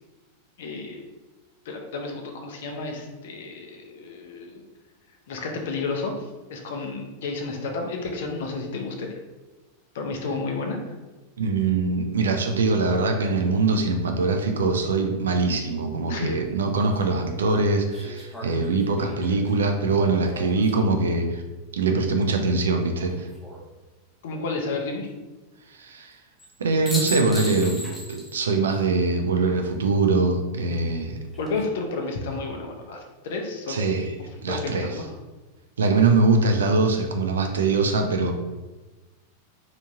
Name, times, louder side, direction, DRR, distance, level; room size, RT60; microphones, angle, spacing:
voice 1, 0.6-1.1 1.6-4.6 5.3-9.1 9.9-10.9 16.1-16.4 24.2-25.1 31.4-33.8 34.5-35.1, left 3 dB, 55° left, 2 dB, 0.6 m, -31 dB
voice 2, 11.4-21.4 21.7-23.1 25.8-26.1 26.6-31.2 33.7-34.1 34.4-34.9 35.8-38.3, right 3 dB, 65° right, 4 dB, 0.4 m, -23 dB
sound 1, 16.4-16.5 17.9-21.1 23.0-23.6 26.4-26.5 26.9-28.4 28.7-28.8 31.1-31.6, equal, 10° left, 0.7 m, -37 dB
3.4 x 2.8 x 2.7 m, 1.2 s
figure-of-eight pair, 90°, 0 cm